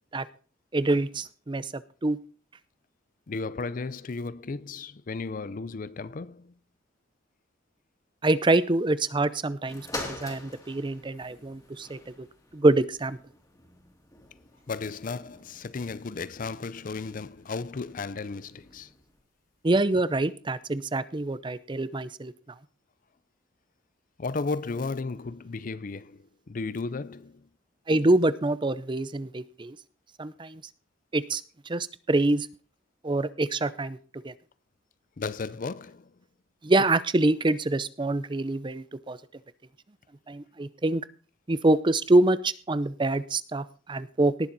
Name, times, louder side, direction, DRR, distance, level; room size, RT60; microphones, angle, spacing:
voice 1, 0.7-2.2 8.2-12.0 12.5-13.2 19.6-22.3 27.9-29.8 30.2-30.6 31.1-31.4 31.7-32.5 33.0-34.0 34.2-34.3 36.6-39.2 40.3-41.0 41.5-44.3, right 2 dB, 25° right, 0.6 m, -25 dB
voice 2, 3.3-6.5 14.7-18.9 24.2-27.5 35.2-36.1, left 4 dB, 45° left, 0.5 m, -34 dB
sound 1, 9.7-19.2 19.9-20.0, left 2 dB, 20° left, 2.5 m, -45 dB
18.5 x 7.2 x 4.0 m
head